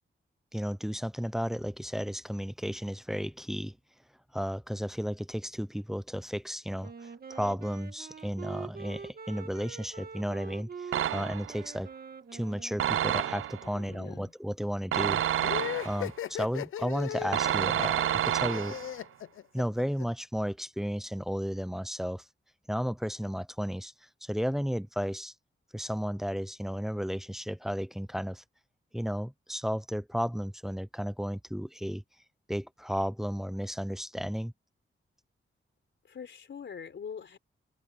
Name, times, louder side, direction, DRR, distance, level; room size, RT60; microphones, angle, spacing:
voice 1, 0.5-3.8 4.3-11.9 12.3-15.2 15.8-18.8 19.5-22.2 22.7-23.9 24.2-25.3 25.7-28.4 28.9-32.0 32.5-34.5, equal, ahead, 0.6 m, -33 dB
Wind instrument woodwind instrument, 6.8-13.5, right 5 dB, 50° right, 1.9 m, -45 dB
sound 1, 10.9-11.6 12.8-13.7 14.9-16.1 17.3-19.0, right 11 dB, 85° right, 0.5 m, -29 dB
voice 2, 13.6-14.3 36.1-37.4, left 7 dB, 65° left, 3.9 m, -43 dB
sound 2, 15.4-20.0, left 11 dB, 85° left, 0.5 m, -37 dB
wide cardioid pair, 145°, 21 cm